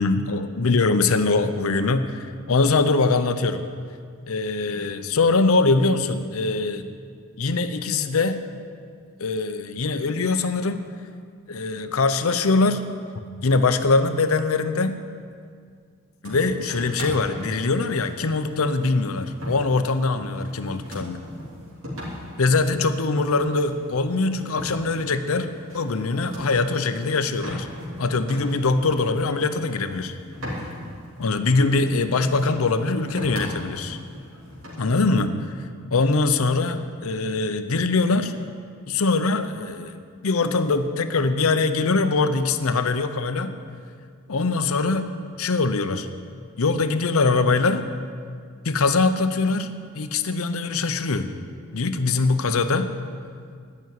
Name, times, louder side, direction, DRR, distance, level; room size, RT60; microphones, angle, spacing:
voice 1, 0.0-3.6 4.3-6.9 7.4-8.4 9.2-10.8 11.5-12.8 13.4-15.0 16.2-21.2 22.4-27.7 28.0-30.1 31.2-34.0 34.8-35.3 35.9-38.3 38.9-40.0 40.2-43.5 44.3-45.1 45.4-46.1 46.6-47.8 48.6-51.3 51.7-52.9, left 3 dB, 80° left, 10 dB, 0.7 m, -22 dB
sound 1, 16.2-35.2, equal, 75° right, 3.1 m, -38 dB
12.0 x 6.2 x 9.4 m, 2.1 s
head